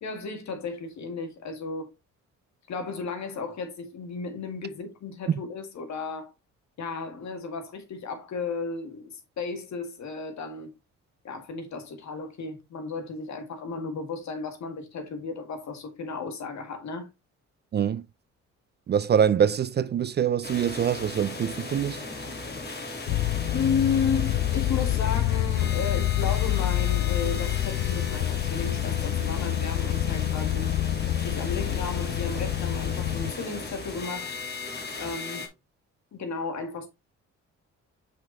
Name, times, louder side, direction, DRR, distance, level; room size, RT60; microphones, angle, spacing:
voice 1, 0.0-1.9 2.7-6.3 6.8-10.7 11.2-17.1 23.5-30.7 31.2-34.4 35.0-35.5 36.1-36.9, left 5 dB, 65° left, 2.0 m, -33 dB
voice 2, 17.7-18.0 18.9-22.0, right 8 dB, 35° right, 0.4 m, -24 dB
sound 1, 20.4-35.5, left 3 dB, 35° left, 2.4 m, -37 dB
sound 2, 23.1-33.3, left 14 dB, 85° left, 0.6 m, -27 dB
5.8 x 5.4 x 3.3 m
cardioid pair, 90°, 30 cm